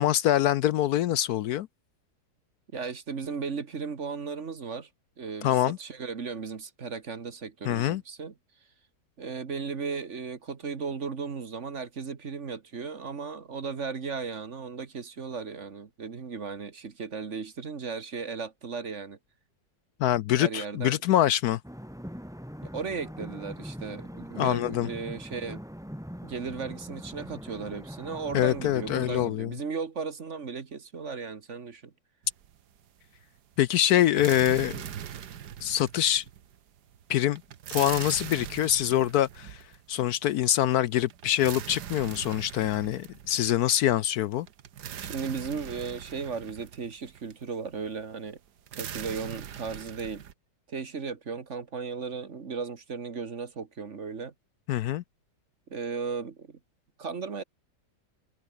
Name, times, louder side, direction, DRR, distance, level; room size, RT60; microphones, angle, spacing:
voice 1, 0.0-1.7 5.4-5.8 7.7-8.0 20.0-21.6 24.4-24.9 28.3-29.5 33.6-34.8 35.6-36.2 37.1-37.4 37.7-39.6 39.9-44.5 54.7-55.0, left 12 dB, 70° left, 1.0 m, -25 dB
voice 2, 2.7-4.9 5.2-8.3 9.2-19.2 20.3-21.0 22.6-25.6 26.2-31.9 45.0-48.4 48.7-50.2 50.7-54.3 55.7-56.6 57.0-57.4, right 5 dB, 45° right, 1.7 m, -36 dB
sound 1, 21.6-29.3, equal, ahead, 4.3 m, -42 dB
sound 2, 32.2-32.9 33.2-50.3, right 9 dB, 70° right, 1.7 m, -41 dB
omnidirectional pair, 1.8 m